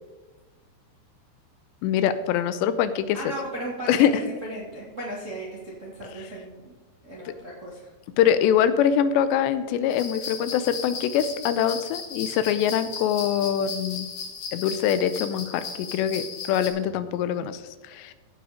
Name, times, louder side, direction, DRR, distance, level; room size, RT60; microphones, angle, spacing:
voice 1, 1.8-3.2 3.9-4.1 8.2-14.1 14.5-18.1, left 9 dB, 85° left, 12 dB, 2.9 m, -24 dB
voice 2, 3.1-6.8 7.0-7.9, right 1 dB, 40° right, -4 dB, 1.0 m, -36 dB
sound 1, 9.9-16.7, left 5 dB, 60° left, 1.5 m, -36 dB
16.0 x 5.6 x 5.0 m, 1.2 s
omnidirectional pair, 5.0 m